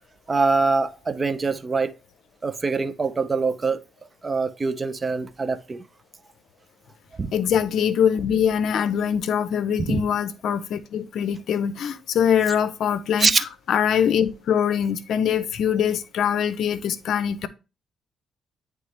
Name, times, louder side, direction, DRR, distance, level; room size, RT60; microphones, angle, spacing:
voice 1, 0.3-1.9 2.4-3.8 4.2-5.8 7.2-7.3 9.9-10.0 13.2-13.4, right 4 dB, 30° right, 0.6 m, -23 dB
voice 2, 7.3-17.5, left 8 dB, 70° left, 0.5 m, -23 dB
9.4 x 3.3 x 3.2 m
cardioid pair, 90°, 0 cm